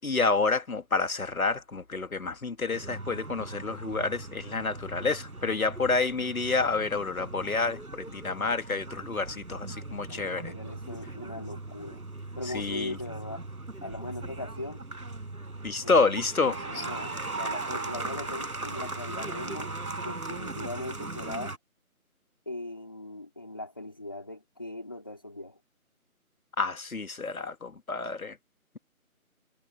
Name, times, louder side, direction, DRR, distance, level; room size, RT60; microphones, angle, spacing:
voice 1, 0.0-10.5 12.5-13.0 15.6-16.9 26.6-28.4, left 4 dB, 70° left, 1.7 m, -29 dB
sound 1, 2.7-21.6, right 2 dB, 80° right, 5.4 m, -39 dB
voice 2, 10.1-12.0 12.4-13.4 13.8-14.8 15.8-16.0 16.4-21.5 22.5-25.6, left 2 dB, 15° left, 2.1 m, -40 dB
figure-of-eight pair, 180°, 44 cm